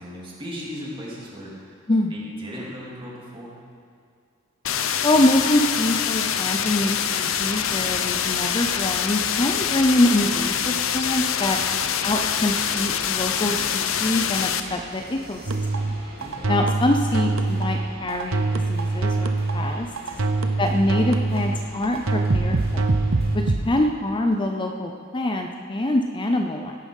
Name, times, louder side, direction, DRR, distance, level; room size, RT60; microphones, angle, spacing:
voice 1, 0.0-1.5 2.1-3.6 11.5-11.7 16.2-16.5 20.1-20.4, equal, 25° right, -5 dB, 3.0 m, -37 dB
sound 1, 4.6-14.6, left 8 dB, 75° left, 0.7 m, -25 dB
voice 2, 5.0-11.6 12.0-15.4 15.7-15.9 16.5-19.9 20.6-22.9 23.3-26.7, left 1 dB, 25° left, 4 dB, 0.6 m, -24 dB
sound 2, 7.2-23.4, equal, 50° right, 2.3 m, -44 dB
sound 3, 15.5-23.6, right 3 dB, 75° right, 0.9 m, -24 dB
16.5 x 10.0 x 5.5 m, 2.2 s
head